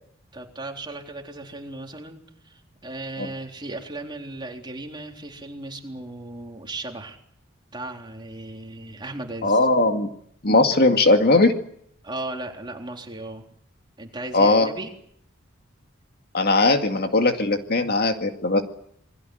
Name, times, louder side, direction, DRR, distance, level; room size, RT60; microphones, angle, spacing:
voice 1, 0.3-7.2 7.7-9.6 12.0-13.5 14.0-14.9, right 2 dB, 25° right, 2 dB, 3.8 m, -36 dB
voice 2, 9.4-10.1 10.4-11.5 14.3-14.7 16.3-18.6, left 2 dB, 50° left, 5 dB, 2.2 m, -19 dB
28.0 x 21.5 x 7.9 m, 0.68 s
head